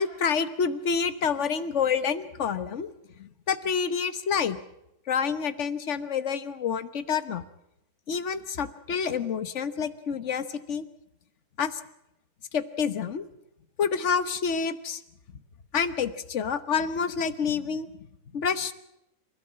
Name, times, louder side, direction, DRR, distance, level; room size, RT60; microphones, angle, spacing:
voice 1, 0.0-2.9 3.2-4.6 5.1-7.4 8.1-10.8 11.6-11.8 12.5-13.2 13.8-15.0 15.7-17.9 18.3-18.7, left 6 dB, 45° left, 13 dB, 1.2 m, -28 dB
27.5 x 13.5 x 8.7 m, 0.83 s
omnidirectional pair, 2.0 m